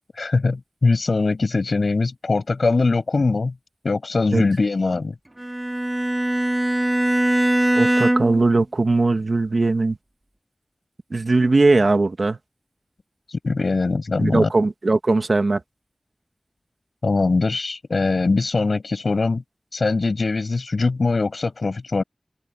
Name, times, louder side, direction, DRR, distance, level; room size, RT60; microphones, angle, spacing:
voice 1, 0.2-3.5 3.8-5.1 13.4-14.5 17.0-19.4 19.7-22.0, left 3 dB, 90° left, 7.3 m, -21 dB
Bowed string instrument, 5.4-8.5, right 1 dB, 25° right, 2.6 m, -21 dB
voice 2, 7.7-10.0 11.1-12.4 14.2-15.6, right 3 dB, 75° right, 1.7 m, -19 dB
wide cardioid pair, 45°, 0 cm